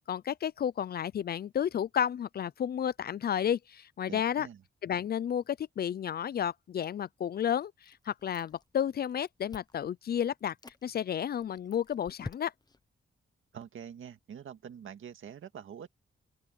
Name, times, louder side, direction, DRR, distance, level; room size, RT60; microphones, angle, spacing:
voice 1, 0.0-4.5 4.8-10.6 10.8-12.5, left 9 dB, 50° left, 0.4 m, -32 dB
voice 2, 4.1-4.6 13.5-16.0, right 8 dB, 75° right, 1.9 m, -45 dB
Chewing mastication, 7.8-8.8 9.0-9.9 10.4-10.8 11.4-12.8, left 3 dB, 20° left, 0.8 m, -47 dB
open air
wide cardioid pair, 150°, 21 cm